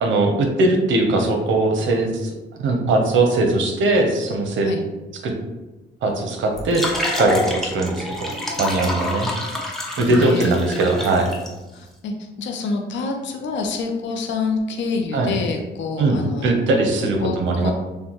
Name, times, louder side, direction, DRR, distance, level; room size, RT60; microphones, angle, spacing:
voice 1, 0.0-4.7 5.2-5.3 6.0-6.8 7.2-9.3 10.0-11.3 15.1-15.3 16.0-17.7, right 2 dB, 80° right, 3 dB, 0.8 m, -20 dB
sound 1, 6.5-11.5, left 1 dB, ahead, 0.8 m, -27 dB
voice 2, 10.1-10.6 11.7-16.5 17.2-17.7, left 4 dB, 75° left, 3 dB, 0.6 m, -27 dB
6.5 x 2.2 x 3.0 m, 1.1 s
cardioid pair, 90°, 19 cm